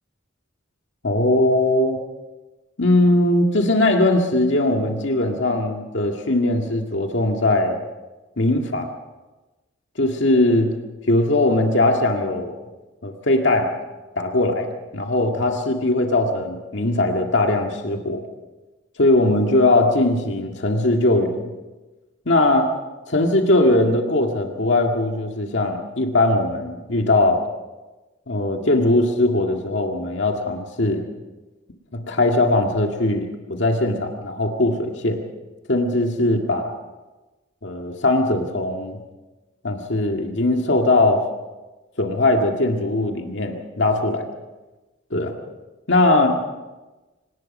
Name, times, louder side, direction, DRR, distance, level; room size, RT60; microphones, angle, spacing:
voice 1, 1.0-2.0 2.8-7.8 8.4-8.9 10.0-10.7 11.1-12.6 13.0-13.7 14.2-18.2 19.0-21.4 22.3-22.7 23.1-27.4 28.3-31.0 31.9-35.2 35.7-36.7 37.6-39.0 39.6-41.2 42.0-44.3 45.1-45.3 45.9-46.4, left 2 dB, 70° left, 2 dB, 2.0 m, -20 dB
26.0 x 19.0 x 5.4 m, 1.2 s
head